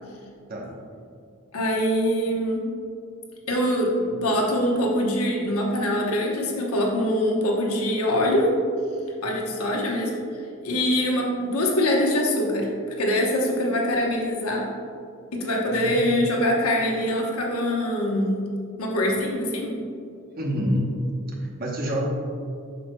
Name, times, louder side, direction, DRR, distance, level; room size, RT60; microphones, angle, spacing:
voice 1, 1.5-2.6 3.5-8.5 9.2-10.1 10.6-12.7 13.0-14.6 15.3-18.5 18.8-19.7, left 1 dB, 80° left, -1 dB, 1.0 m, -23 dB
voice 2, 15.7-16.2 20.4-20.9 21.4-22.1, equal, 40° right, -1 dB, 1.0 m, -27 dB
8.1 x 5.9 x 2.2 m, 2.3 s
head